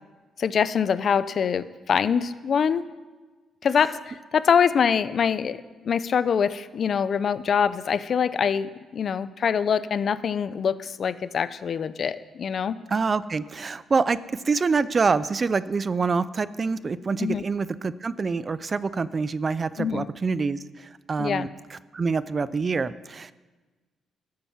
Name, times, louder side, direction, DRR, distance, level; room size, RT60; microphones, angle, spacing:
voice 1, 0.4-2.9 3.6-12.8 17.2-17.4 19.8-20.1 21.2-21.5, left 7 dB, 55° left, 15 dB, 0.6 m, -24 dB
voice 2, 12.9-14.2 14.4-23.3, right 4 dB, 35° right, 16 dB, 0.5 m, -26 dB
12.5 x 8.7 x 7.3 m, 1.3 s
cardioid pair, 90°, 0 cm